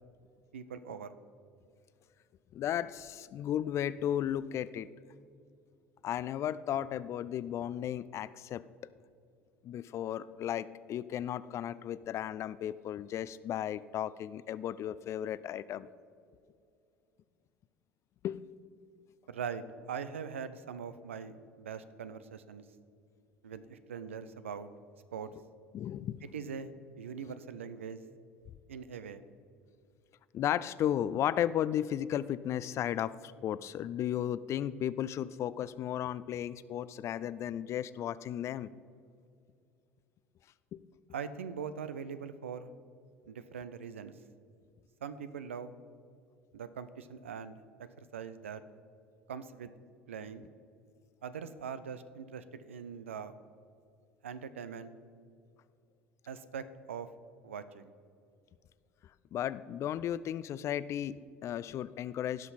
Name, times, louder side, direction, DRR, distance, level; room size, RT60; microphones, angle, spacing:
voice 1, 0.5-1.1 19.3-22.6 23.4-24.7 25.1-25.3 26.3-26.7 27.0-28.0 28.7-29.2 41.1-42.7 43.3-44.1 45.0-45.7 46.5-47.6 48.0-48.6 49.3-49.7 50.1-50.5 51.2-53.3 54.2-54.9 56.3-57.1 57.4-57.9, right 6 dB, 85° right, 12 dB, 0.5 m, -42 dB
voice 2, 2.5-4.9 6.0-8.6 9.6-15.9 18.2-18.4 25.7-26.2 30.3-38.7 40.7-40.8 59.3-62.5, left 11 dB, 45° left, 17 dB, 0.4 m, -34 dB
16.5 x 5.9 x 4.2 m, 2.4 s
hypercardioid pair, 70°, 7 cm